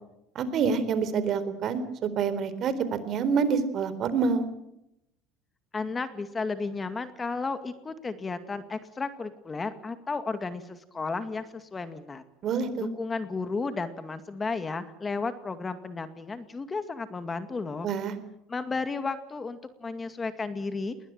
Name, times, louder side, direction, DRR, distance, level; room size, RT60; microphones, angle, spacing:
voice 1, 0.4-2.7 3.1-4.5 12.4-12.9 17.8-18.1, right 5 dB, 50° right, 12 dB, 3.9 m, -27 dB
voice 2, 5.7-12.2 12.8-17.9 18.5-21.0, left 4 dB, 25° left, 10 dB, 2.1 m, -33 dB
21.0 x 20.0 x 8.8 m, 0.85 s
supercardioid pair, 95°, 0 cm